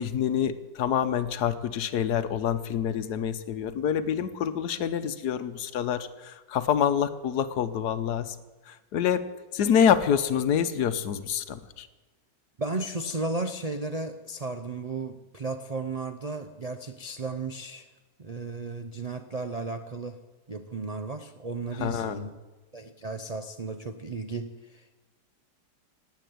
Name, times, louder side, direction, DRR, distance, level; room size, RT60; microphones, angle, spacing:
voice 1, 0.0-8.4 8.6-9.3 9.5-11.9 21.7-22.3, left 8 dB, 70° left, 12 dB, 1.3 m, -27 dB
voice 2, 12.6-17.9 18.2-20.2 20.5-22.3 22.7-24.9, right 3 dB, 65° right, 8 dB, 0.4 m, -34 dB
18.0 x 8.3 x 9.2 m, 1.2 s
omnidirectional pair, 1.8 m